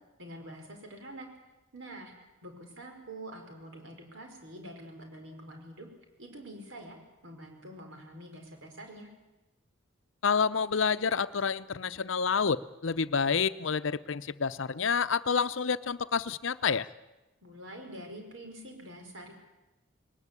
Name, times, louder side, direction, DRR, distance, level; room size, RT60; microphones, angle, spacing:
voice 1, 0.2-1.3 1.7-5.9 6.2-7.0 7.2-9.1 17.4-19.3, right 1 dB, 70° right, 3 dB, 5.1 m, -46 dB
voice 2, 10.2-16.9, left 5 dB, 70° left, 14 dB, 0.7 m, -28 dB
20.5 x 19.5 x 8.4 m, 1.0 s
head